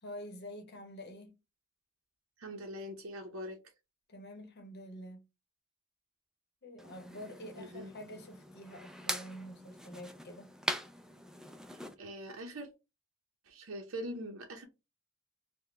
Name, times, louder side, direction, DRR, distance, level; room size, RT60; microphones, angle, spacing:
voice 1, 0.0-1.4 4.1-5.2 6.6-10.5, equal, 55° left, 0.9 m, -47 dB
voice 2, 2.4-3.6 7.6-7.9 11.7-12.7 13.5-14.6, equal, 70° right, 0.7 m, -43 dB
sound 1, 6.8-11.9, equal, 5° right, 0.3 m, -42 dB
4.1 x 2.1 x 3.2 m
head